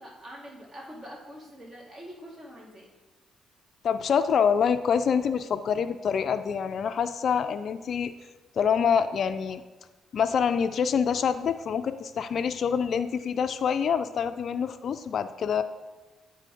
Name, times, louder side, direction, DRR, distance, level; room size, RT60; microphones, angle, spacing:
voice 1, 0.0-2.9, equal, 35° right, -4 dB, 2.5 m, -44 dB
voice 2, 3.8-8.1 8.6-9.6 10.1-15.6, left 7 dB, 60° left, 11 dB, 0.3 m, -26 dB
10.0 x 4.1 x 3.8 m, 1.2 s
cardioid pair, 90°, 0 cm